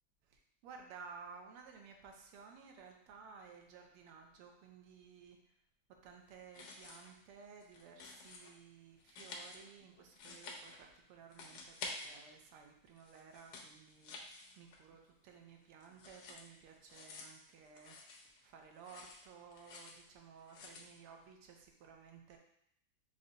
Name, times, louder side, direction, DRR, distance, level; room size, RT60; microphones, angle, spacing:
voice 1, 0.2-5.4 6.0-18.0 18.4-22.4, right 6 dB, 85° right, 3 dB, 1.6 m, -56 dB
sound 1, 6.4-7.2 7.5-8.5 9.0-11.0 11.3-12.5 12.9-15.0 15.3-18.4 18.7-20.0 20.4-20.9, left 3 dB, 70° left, 1.0 m, -51 dB
5.2 x 2.6 x 3.9 m, 0.72 s
omnidirectional pair, 2.4 m